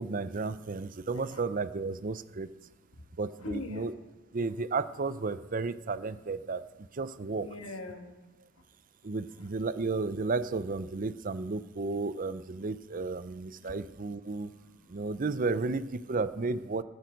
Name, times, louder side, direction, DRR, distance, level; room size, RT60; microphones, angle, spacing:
voice 1, 0.0-2.5 3.2-3.9 4.3-6.6 6.9-7.5 9.0-14.5 14.9-16.8, right 3 dB, 40° right, 14 dB, 0.5 m, -33 dB
voice 2, 3.4-3.9 7.4-8.2 12.2-12.3 13.1-13.8 14.3-14.9, left 1 dB, 85° left, 4 dB, 1.7 m, -43 dB
18.5 x 8.9 x 5.2 m, 1.1 s
head